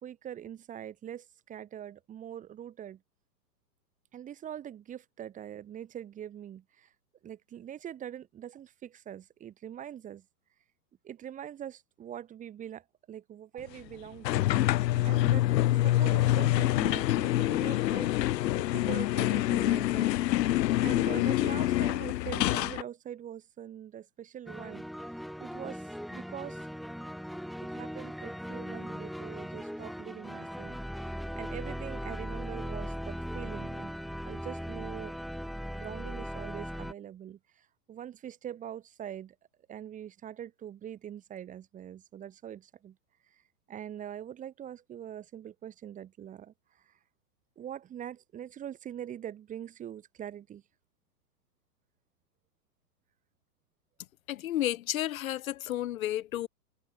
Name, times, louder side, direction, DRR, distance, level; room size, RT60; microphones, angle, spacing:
voice 1, 0.0-3.0 4.1-6.9 7.2-10.2 11.0-14.5 15.0-18.1 18.6-20.2 20.8-24.9 25.4-26.6 27.6-34.0 34.2-35.2 35.7-39.4 39.7-43.0 43.7-46.5 46.9-47.0 47.6-50.6, right 10 dB, 15° right, 2.4 m, -43 dB
sound 1, 14.2-22.8, left 15 dB, 80° left, 0.6 m, -26 dB
sound 2, 24.5-36.9, equal, ahead, 4.0 m, -39 dB
voice 2, 54.3-56.5, left 13 dB, 55° left, 1.3 m, -32 dB
hypercardioid pair, 145°, 49 cm